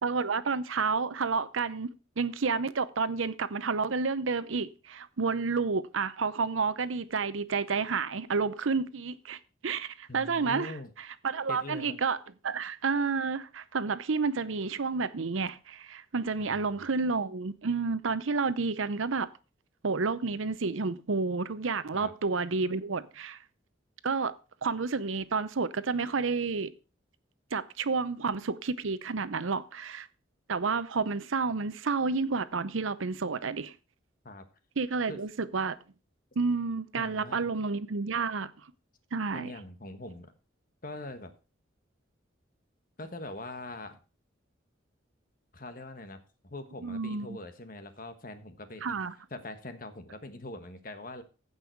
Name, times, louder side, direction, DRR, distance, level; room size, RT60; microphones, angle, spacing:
voice 1, 0.0-1.9 2.2-12.2 12.4-19.3 19.8-23.4 24.0-24.3 24.6-26.7 27.5-30.1 30.5-33.7 34.8-35.8 36.4-38.5 39.1-39.5 46.8-47.4 48.8-49.1, right 4 dB, 85° right, 0.7 m, -30 dB
voice 2, 10.1-10.9 11.5-12.0 16.4-16.8 21.9-22.1 34.2-34.4 35.1-35.2 36.9-37.5 39.3-40.3 40.8-41.3 43.0-44.0 45.5-49.0 49.3-51.2, left 2 dB, 45° left, 1.4 m, -43 dB
15.5 x 5.5 x 4.6 m
head